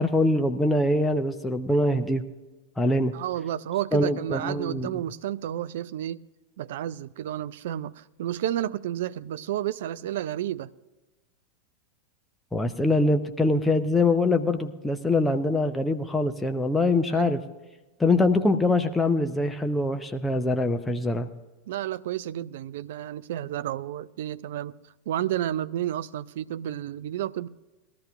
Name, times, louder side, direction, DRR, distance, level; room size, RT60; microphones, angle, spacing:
voice 1, 0.0-2.2 2.8-3.1 3.9-5.0 12.5-17.4 18.0-21.3, left 2 dB, 10° left, 0.7 m, -23 dB
voice 2, 3.1-6.2 6.6-10.7 17.1-17.3 21.7-24.8 25.1-27.5, right 12 dB, 55° right, 0.4 m, -31 dB
21.0 x 13.5 x 2.5 m
figure-of-eight pair, 90°, 0 cm